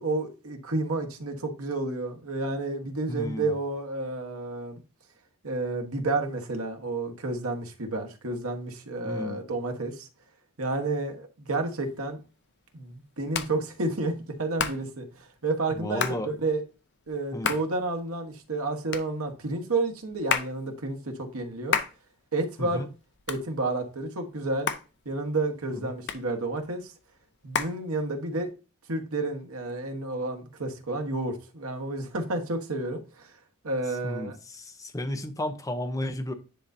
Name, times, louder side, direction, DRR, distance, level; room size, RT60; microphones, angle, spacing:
voice 1, 0.0-4.8 5.4-10.1 10.6-12.2 12.7-14.1 14.4-16.6 17.1-21.8 22.3-22.9 23.3-24.7 25.0-26.9 27.4-28.5 28.9-33.3 33.6-34.3, right 2 dB, 80° right, 1.3 m, -30 dB
voice 2, 3.1-3.5 9.0-9.4 15.7-16.3 17.3-17.5 22.6-22.9 25.8-25.9 34.0-36.3, left 1 dB, 15° left, 0.7 m, -33 dB
Hands, 11.8-28.5, left 7 dB, 55° left, 0.6 m, -35 dB
9.9 x 4.0 x 2.7 m
head